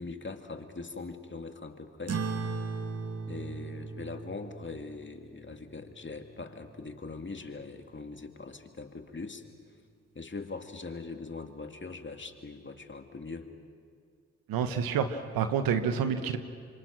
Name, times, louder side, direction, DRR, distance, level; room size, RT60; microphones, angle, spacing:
voice 1, 0.0-2.2 3.3-9.4 10.1-13.5, left 3 dB, 35° left, 6 dB, 2.4 m, -41 dB
sound 1, 2.1-6.9, right 4 dB, 45° right, 2.1 m, -38 dB
voice 2, 14.5-16.4, right 7 dB, 80° right, 9 dB, 1.4 m, -28 dB
29.0 x 25.5 x 6.2 m, 2.2 s
hypercardioid pair, 40°, 35 cm